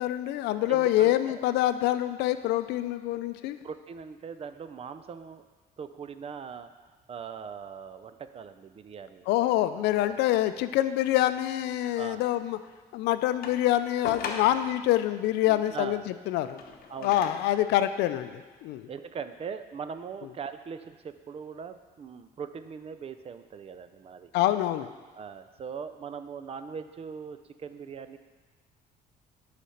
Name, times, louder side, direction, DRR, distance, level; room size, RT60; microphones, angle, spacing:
voice 1, 0.0-3.6 9.3-12.6 12.9-16.0 16.3-16.6 17.0-18.9 24.3-24.9, left 13 dB, 85° left, 11 dB, 0.5 m, -26 dB
voice 2, 0.7-1.4 3.6-5.4 5.8-6.7 7.1-9.3 9.9-10.1 12.0-12.2 15.5-16.1 16.4-16.5 16.9-17.3 18.9-24.3 25.2-28.2, right 6 dB, 35° right, 10 dB, 0.5 m, -40 dB
sound 1, 13.4-14.8 16.4-17.6 18.4-18.5, left 5 dB, 60° left, 0.9 m, -39 dB
8.3 x 5.0 x 5.7 m, 1.3 s
cardioid pair, 110°, 17 cm